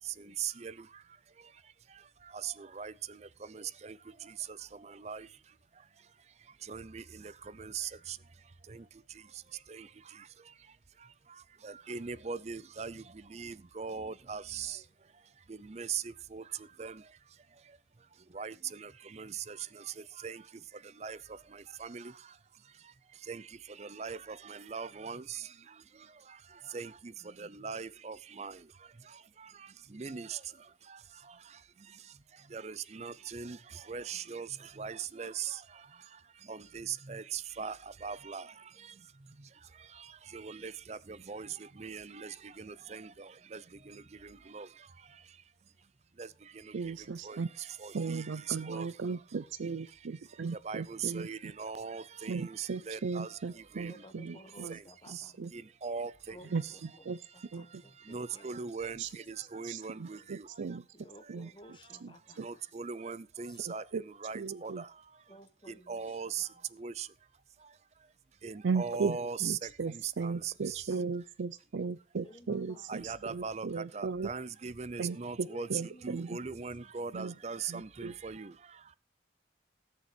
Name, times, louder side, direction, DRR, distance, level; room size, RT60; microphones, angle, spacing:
voice 1, 0.0-45.4 46.2-48.9 50.3-54.1 54.7-56.4 57.6-60.8 61.2-61.3 61.8-62.0 62.3-65.3 65.7-67.1 67.6-68.1 68.4-70.9 72.9-75.7 76.0-78.9, right 6 dB, 35° right, 0.5 m, -42 dB
voice 2, 46.7-47.5 47.9-51.5 52.3-54.8 55.1-55.5 56.5-57.2 57.5-57.8 59.0-59.1 59.4-60.9 61.3-61.5 62.0-62.5 63.6-64.0 64.3-64.8 68.6-74.3 75.0-76.4 77.1-77.3 77.7-78.1, right 4 dB, 85° right, 0.5 m, -37 dB
voice 3, 53.7-55.5 56.3-57.1 57.5-58.5 60.9-62.6 63.4-63.7 65.3-66.6 68.9-69.3 72.2-72.8 75.5-76.6, equal, 25° left, 1.4 m, -56 dB
18.0 x 6.8 x 4.5 m
head